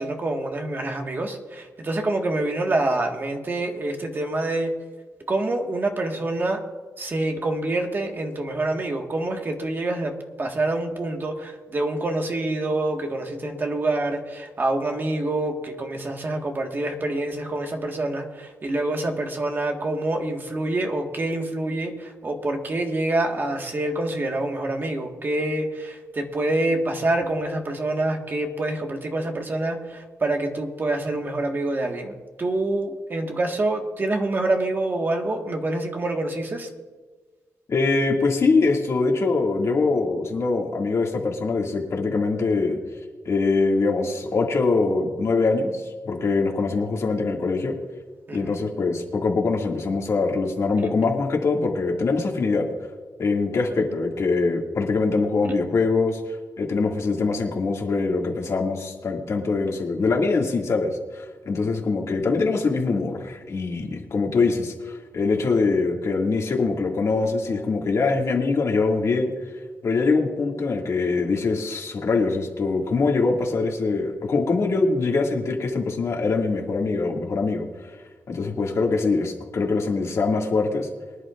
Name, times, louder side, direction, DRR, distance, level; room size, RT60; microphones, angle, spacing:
voice 1, 0.0-4.7 5.3-6.6 7.0-10.1 10.4-36.7 48.3-48.7 50.8-50.9, right 2 dB, 35° right, 2 dB, 1.6 m, -26 dB
voice 2, 37.7-42.8 43.2-47.7 48.3-52.7 53.2-56.2 56.6-69.3 69.8-77.7 78.3-80.9, left 3 dB, 55° left, 0 dB, 2.2 m, -23 dB
24.0 x 11.0 x 2.5 m, 1.3 s
cardioid pair, 110°, 6 cm